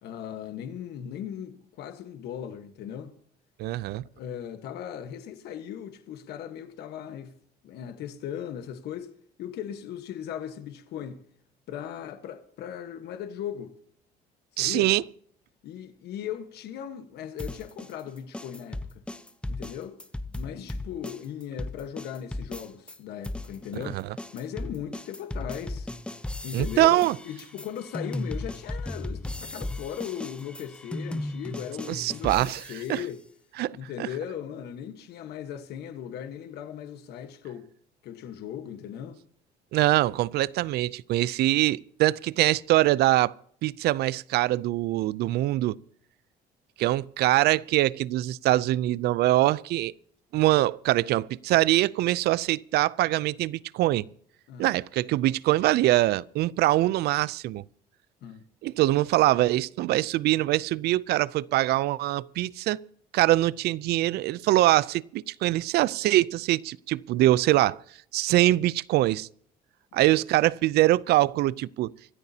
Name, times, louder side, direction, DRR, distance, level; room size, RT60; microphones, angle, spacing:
voice 1, 0.0-3.1 4.1-7.3 7.6-9.1 9.4-11.2 11.7-13.7 14.5-14.9 15.6-19.0 19.5-20.0 20.3-25.9 26.4-33.2 33.7-37.7 38.0-39.2 54.5-54.7 58.2-58.4, left 9 dB, 75° left, 1.3 m, -38 dB
voice 2, 3.6-4.0 14.6-15.0 23.9-24.0 26.5-27.2 31.9-32.6 32.9-33.0 33.6-34.1 39.7-43.3 43.6-45.8 46.8-49.9 50.3-54.1 54.6-57.6 58.6-62.8 63.1-67.8 68.1-69.3 69.9-71.9, right 16 dB, 75° right, 0.5 m, -23 dB
sound 1, 17.4-23.0 23.2-33.0, left 1 dB, 5° left, 0.7 m, -36 dB
25.5 x 13.5 x 2.8 m
cardioid pair, 110°, 17 cm